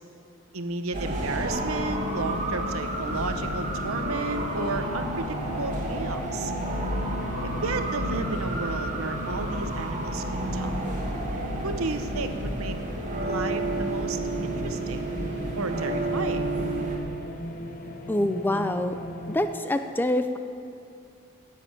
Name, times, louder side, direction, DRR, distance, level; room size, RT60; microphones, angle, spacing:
voice 1, 0.5-6.5 7.4-10.2 10.5-10.8 11.6-12.8 13.2-15.0 15.6-16.4, right 3 dB, 85° right, 8 dB, 0.9 m, -33 dB
sound 1, 0.9-17.0, right 1 dB, 35° right, 1.8 m, -30 dB
sound 2, 3.1-19.4, left 1 dB, 40° left, 0.9 m, -38 dB
voice 2, 18.1-19.0 19.3-20.4, left 1 dB, 10° left, 8 dB, 0.4 m, -25 dB
10.0 x 7.5 x 8.9 m, 2.5 s
head